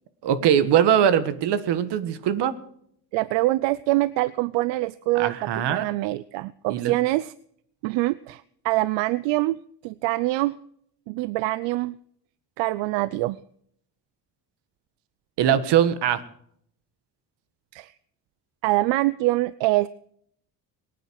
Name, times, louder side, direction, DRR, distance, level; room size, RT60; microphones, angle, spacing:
voice 1, 0.2-2.6 5.2-5.9 6.7-6.9 15.4-16.2, right 9 dB, 70° right, 13 dB, 1.6 m, -21 dB
voice 2, 3.1-7.3 7.8-9.6 9.8-10.6 11.1-12.0 12.6-13.4 17.7-17.9 18.6-19.9, right 18 dB, 85° right, 18 dB, 0.6 m, -24 dB
23.0 x 9.3 x 4.7 m, 0.67 s
cardioid pair, 115°, 43 cm